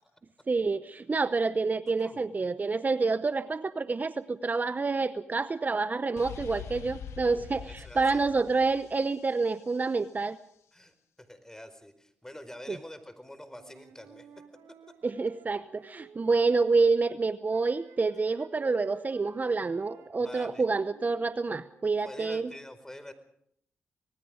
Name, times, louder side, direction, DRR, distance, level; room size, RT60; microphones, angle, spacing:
voice 1, 0.5-10.4 12.7-12.8 15.0-22.5, right 4 dB, 40° right, 12 dB, 0.9 m, -28 dB
sound 1, 6.2-9.9, left 8 dB, 80° left, 1.4 m, -44 dB
voice 2, 7.7-8.2 10.7-10.9 11.3-14.3 20.2-20.6 22.0-23.1, left 1 dB, 10° left, 11 dB, 4.8 m, -46 dB
Wind instrument woodwind instrument, 13.5-17.2 17.5-21.9, right 7 dB, 80° right, 3.4 m, -53 dB
26.5 x 19.5 x 5.1 m, 0.70 s
supercardioid pair, 50°, 5 cm